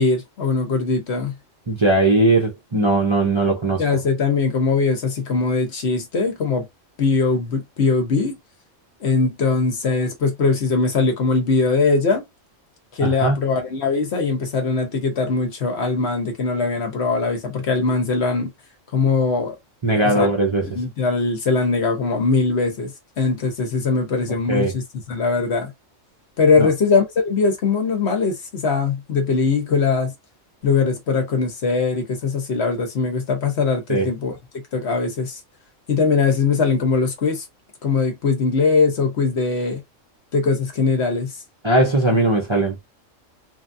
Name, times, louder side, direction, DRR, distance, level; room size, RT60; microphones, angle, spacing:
voice 1, 0.0-1.3 3.8-6.7 7.0-8.4 9.0-12.2 12.9-18.5 18.9-19.6 19.9-20.3 20.6-22.9 23.2-25.7 26.4-30.1 30.6-34.4 34.7-35.4 35.9-37.4 37.8-39.8 40.3-41.3, left 4 dB, 60° left, 1.1 m, -21 dB
voice 2, 1.7-3.8 13.0-13.3 19.8-20.7 24.5-24.7 26.6-26.7 33.9-34.1 41.6-42.7, right 2 dB, 30° right, 0.7 m, -19 dB
3.2 x 2.2 x 2.6 m
omnidirectional pair, 1.4 m